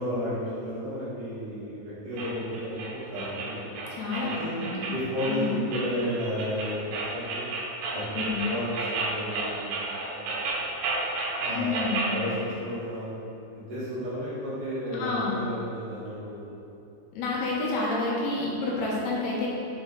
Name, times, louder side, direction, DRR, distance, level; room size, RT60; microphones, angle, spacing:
voice 1, 0.0-3.7 4.2-4.6 4.9-7.5 7.9-8.0 8.4-9.8 10.1-10.4 11.4-11.8 12.1-13.1 13.6-16.4, equal, 60° right, -10 dB, 3.0 m, -33 dB
sound 1, 2.2-12.2, right 3 dB, 80° right, 3.2 m, -32 dB
voice 2, 4.0-4.9 5.3-5.6 8.1-8.5 11.5-12.2 15.0-15.4 17.1-19.5, left 3 dB, 85° left, -5 dB, 3.2 m, -29 dB
7.4 x 4.5 x 3.8 m, 2.9 s
omnidirectional pair, 4.6 m